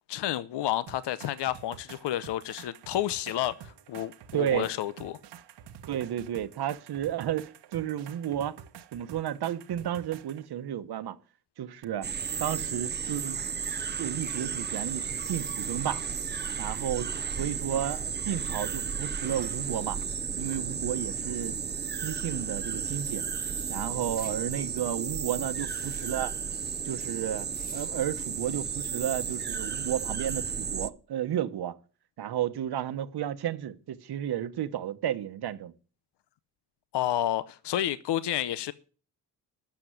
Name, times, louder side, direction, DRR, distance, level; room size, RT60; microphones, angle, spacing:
voice 1, 0.1-5.2 36.9-38.7, left 12 dB, 80° left, 0.8 m, -30 dB
sound 1, 0.9-10.5 11.8-11.9, right 9 dB, 90° right, 1.3 m, -49 dB
voice 2, 4.3-4.7 5.9-8.6 8.9-11.2 11.6-12.1 12.4-13.4 14.0-16.0 16.6-20.0 20.3-21.6 22.0-23.3 23.7-26.3 26.8-27.5 27.7-31.7 32.2-35.7, right 11 dB, 70° right, 1.2 m, -32 dB
sound 2, 12.0-30.9, right 6 dB, 25° right, 0.5 m, -33 dB
sound 3, 24.1-24.4 25.6-26.2 27.5-27.9, left 2 dB, 20° left, 1.8 m, -49 dB
13.0 x 7.1 x 9.3 m
wide cardioid pair, 150°, 41 cm